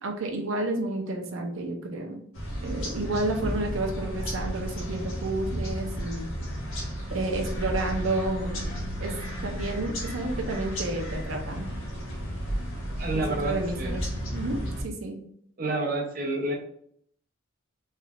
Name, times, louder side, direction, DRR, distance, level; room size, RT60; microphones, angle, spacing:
voice 1, 0.0-2.2 2.6-6.3 7.1-8.6 9.0-9.2 9.4-11.7 13.1-14.0 14.3-15.2, right 2 dB, 85° right, 3 dB, 0.6 m, -31 dB
sound 1, 2.3-14.8, equal, 90° left, 1.1 m, -33 dB
voice 2, 13.0-14.0 15.6-16.6, right 2 dB, 45° right, 0 dB, 0.6 m, -29 dB
3.6 x 3.2 x 2.3 m, 0.66 s
head